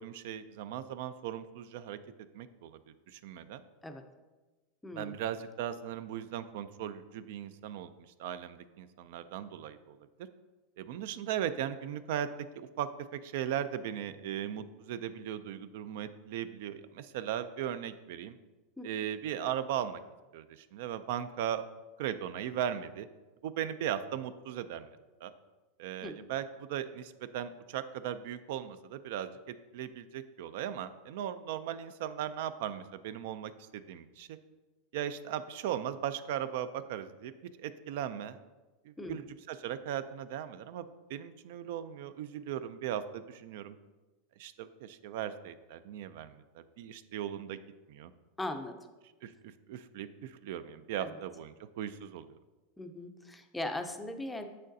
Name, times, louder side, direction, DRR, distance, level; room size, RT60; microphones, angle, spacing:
voice 1, 0.0-2.0 2.3-2.8 3.1-3.6 4.9-7.9 8.2-10.0 10.8-12.3 12.6-18.4 18.8-20.0 20.3-21.6 22.0-23.1 23.4-24.9 25.2-25.3 25.8-34.4 34.9-37.3 37.6-38.4 38.9-43.8 44.4-47.6 47.9-48.1 49.2-52.4, right 10 dB, 65° right, 12 dB, 0.3 m, -38 dB
voice 2, 4.8-5.2 18.8-18.9 26.0-26.2 39.0-39.2 48.4-48.8 51.0-51.1 52.8-54.5, left 1 dB, 5° left, 6 dB, 0.4 m, -39 dB
7.3 x 6.3 x 2.7 m, 1.2 s
supercardioid pair, 145°, 0 cm